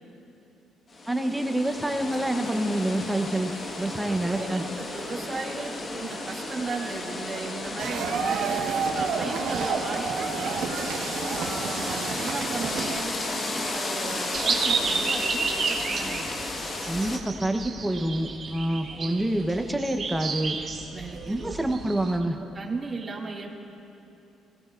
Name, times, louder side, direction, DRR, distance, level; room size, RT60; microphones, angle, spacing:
sound 1, 0.9-17.2, left 2 dB, 35° left, 1.4 m, -33 dB
voice 1, 1.1-4.6 16.9-20.6 21.3-22.4, right 1 dB, 5° right, 5 dB, 0.8 m, -27 dB
voice 2, 4.0-10.6 11.3-16.4 18.9-19.3 20.9-21.6 22.1-23.5, right 3 dB, 25° right, -2 dB, 2.2 m, -36 dB
sound 2, 7.8-13.0, right 5 dB, 80° right, 1.4 m, -30 dB
sound 3, 14.3-22.2, right 4 dB, 45° right, 1.8 m, -31 dB
25.5 x 18.0 x 2.5 m, 2.9 s
cardioid pair, 120°, 0 cm